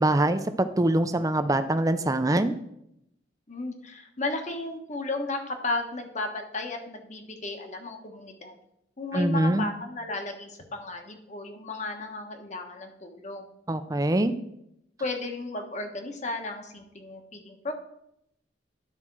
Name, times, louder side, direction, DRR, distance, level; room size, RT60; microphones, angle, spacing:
voice 1, 0.0-2.5 9.1-9.6 13.7-14.3, right 1 dB, 20° right, 10 dB, 0.5 m, -24 dB
voice 2, 3.5-8.6 9.0-13.5 15.0-17.7, left 2 dB, 40° left, 4 dB, 1.2 m, -34 dB
11.0 x 4.3 x 6.1 m, 0.78 s
head